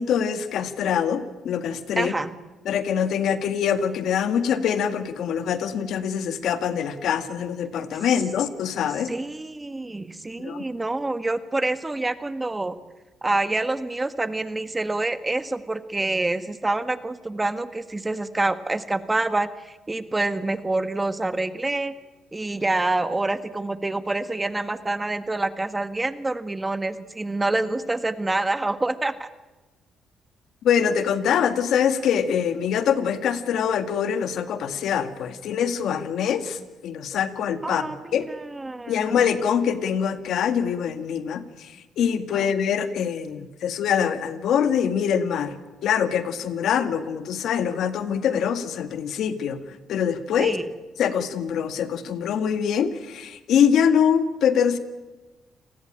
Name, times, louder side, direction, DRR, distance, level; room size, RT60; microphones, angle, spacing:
voice 1, 0.0-2.1 2.7-9.1 10.4-10.6 30.6-38.2 38.9-49.6 49.9-50.6 51.0-54.8, left 8 dB, 75° left, 10 dB, 1.9 m, -24 dB
voice 2, 1.9-2.3 9.1-12.8 13.2-21.9 22.3-29.3 37.6-39.2 42.3-42.5 50.4-50.7, right 2 dB, 20° right, 12 dB, 1.6 m, -27 dB
29.5 x 19.0 x 9.0 m, 1.2 s
cardioid pair, 90°, 0 cm